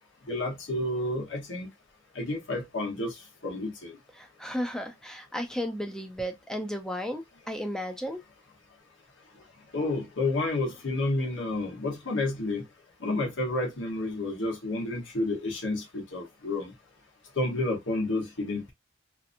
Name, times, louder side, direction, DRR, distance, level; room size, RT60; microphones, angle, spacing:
voice 1, 0.2-1.7 2.1-4.0 9.7-12.7 13.0-16.7 17.3-18.7, left 2 dB, 80° left, 1.0 m, -30 dB
voice 2, 4.2-8.2, equal, 5° left, 0.4 m, -34 dB
2.7 x 2.5 x 2.4 m
head